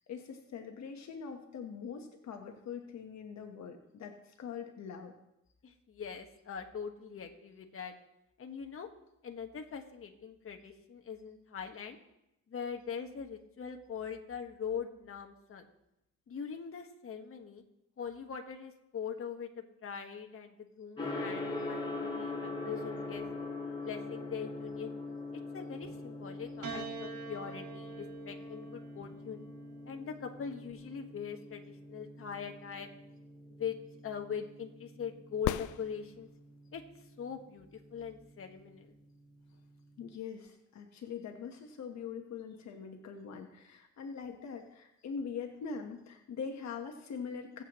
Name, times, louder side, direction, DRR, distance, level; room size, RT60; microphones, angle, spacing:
voice 1, 0.1-5.1 40.0-47.6, left 6 dB, 65° left, 3 dB, 1.3 m, -43 dB
voice 2, 5.6-7.9 8.4-8.9 9.2-12.0 12.5-15.7 16.3-17.6 18.0-23.2 23.8-25.0 25.3-29.4 29.9-32.9 33.5-33.8 34.0-36.3 36.7-36.8 37.2-39.0, left 7 dB, 45° left, 4 dB, 1.5 m, -42 dB
Gong, 21.0-39.9, left 2 dB, 15° left, 5.6 m, -43 dB
Piano, 26.6-31.1 32.1-32.9, right 5 dB, 70° right, 2.5 m, -47 dB
sound 1, 35.3-36.6 40.5-40.6, left 14 dB, 80° left, 0.5 m, -36 dB
21.5 x 8.0 x 3.1 m, 0.87 s
cardioid pair, 90°, 30 cm